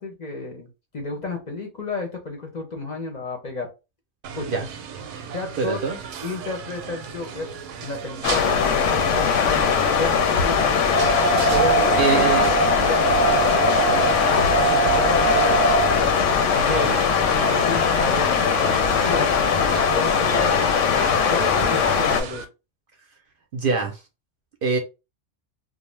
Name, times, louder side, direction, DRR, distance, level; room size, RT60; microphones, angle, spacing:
voice 1, 0.0-3.7 4.3-4.7 5.3-5.8 6.2-7.5 7.8-10.1 10.4-10.7 11.5-13.6 14.2-14.5 14.9-15.8 16.5-17.0 17.4-18.4 19.1-19.3 19.9-20.1 20.3-20.7 21.3-22.4, left 3 dB, 45° left, 0.6 m, -31 dB
sound 1, 4.2-22.4, right 6 dB, 85° right, 0.9 m, -36 dB
voice 2, 5.6-6.0 12.0-12.6 16.7-17.0 23.5-23.9 24.6-24.8, right 4 dB, 60° right, 0.6 m, -24 dB
sound 2, 8.2-22.2, left 6 dB, 90° left, 0.9 m, -20 dB
sound 3, 10.9-15.9, right 5 dB, 15° right, 0.4 m, -22 dB
2.4 x 2.1 x 3.1 m
omnidirectional pair, 1.2 m